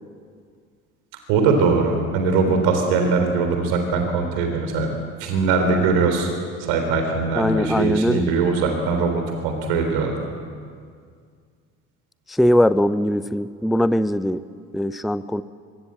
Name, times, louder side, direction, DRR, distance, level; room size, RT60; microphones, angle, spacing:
voice 1, 1.3-4.9 5.2-6.3 6.6-10.1, right 4 dB, 65° right, 5 dB, 3.7 m, -21 dB
voice 2, 7.3-8.2 12.4-14.4 14.7-15.4, equal, ahead, 15 dB, 0.7 m, -20 dB
24.5 x 23.0 x 7.7 m, 2.1 s
figure-of-eight pair, 55°, 41 cm